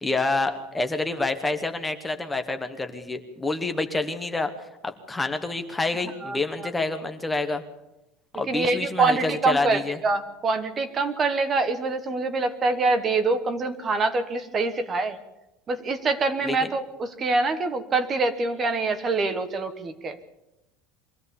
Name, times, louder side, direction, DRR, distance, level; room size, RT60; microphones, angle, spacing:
voice 1, 0.0-4.5 4.8-7.6 8.3-9.2 9.5-10.0 16.4-16.6, left 3 dB, 10° left, 6 dB, 1.1 m, -27 dB
voice 2, 6.2-6.7 8.5-15.2 15.7-20.2, right 3 dB, 20° right, 10 dB, 1.1 m, -25 dB
23.5 x 16.0 x 7.0 m, 0.90 s
cardioid pair, 175°, 0 cm